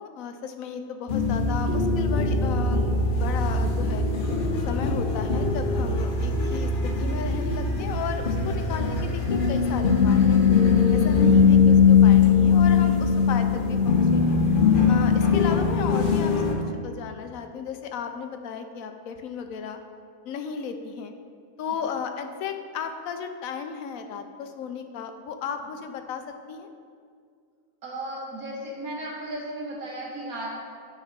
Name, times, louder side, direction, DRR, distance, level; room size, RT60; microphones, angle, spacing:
voice 1, 0.0-4.0 4.5-10.4 10.9-14.4 14.9-16.3 16.8-19.8 20.2-21.1 21.6-26.2 26.5-26.7, left 6 dB, 75° left, 6 dB, 1.0 m, -34 dB
sound 1, 1.1-16.5, left 5 dB, 45° left, 0.8 m, -21 dB
voice 2, 27.8-30.6, right 1 dB, 85° right, -4 dB, 2.0 m, -35 dB
9.4 x 3.4 x 5.1 m, 2.1 s
omnidirectional pair, 1.5 m